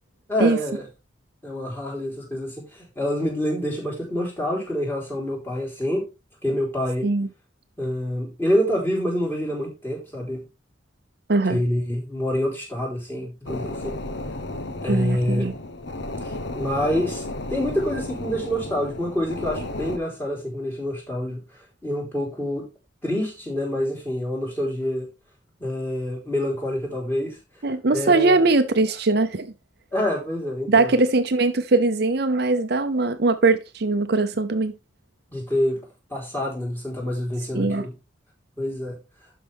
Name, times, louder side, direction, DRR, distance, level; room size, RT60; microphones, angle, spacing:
voice 1, 0.3-0.8 1.4-6.1 6.4-7.1 7.8-10.4 11.5-13.9 14.8-15.5 16.2-17.2 17.5-21.4 21.8-22.6 23.0-25.1 25.6-27.4 27.9-28.5 29.9-30.9 35.3-35.8 36.1-37.9 38.6-39.0, left 1 dB, 10° left, 3.8 m, -26 dB
sound 1, 13.5-20.0, left 2 dB, 60° left, 0.9 m, -33 dB
voice 2, 14.9-15.5 27.6-29.5 30.7-34.7 37.5-37.9, right 3 dB, 55° right, 0.7 m, -21 dB
12.0 x 5.5 x 3.5 m
head